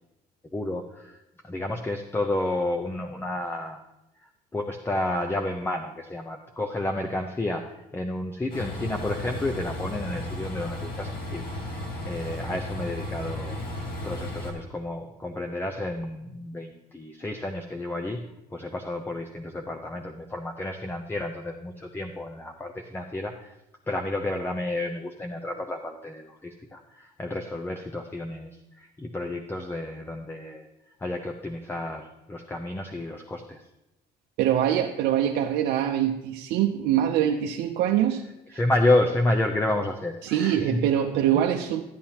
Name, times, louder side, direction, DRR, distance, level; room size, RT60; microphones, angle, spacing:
voice 1, 0.5-1.2 1.4-3.8 4.5-11.5 11.7-13.6 14.0-18.2 18.5-23.3 23.9-28.6 29.0-30.7 31.0-33.6 38.5-40.8, left 1 dB, 15° left, 4 dB, 0.7 m, -30 dB
Train, 8.5-14.5, left 1 dB, 60° left, 2.1 m, -34 dB
voice 2, 34.4-38.2 38.5-38.6 40.2-41.8, right 10 dB, 85° right, 2 dB, 0.6 m, -24 dB
13.0 x 8.8 x 2.9 m, 0.92 s
cardioid pair, 110°, 17 cm